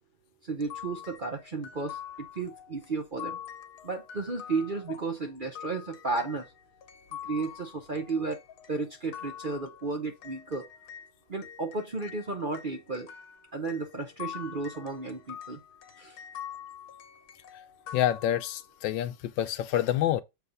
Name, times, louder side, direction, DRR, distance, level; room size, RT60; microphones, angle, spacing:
voice 1, 0.5-2.0 2.4-3.4 3.8-6.4 7.2-8.4 8.7-10.7 11.3-13.1 13.5-15.6 16.0-16.2, right 3 dB, 45° right, 0.7 m, -33 dB
sound 1, 0.6-11.1 11.4-18.8, left 9 dB, 65° left, 1.3 m, -45 dB
voice 2, 17.9-20.2, left 12 dB, 85° left, 1.4 m, -27 dB
7.1 x 3.6 x 5.3 m
omnidirectional pair, 2.0 m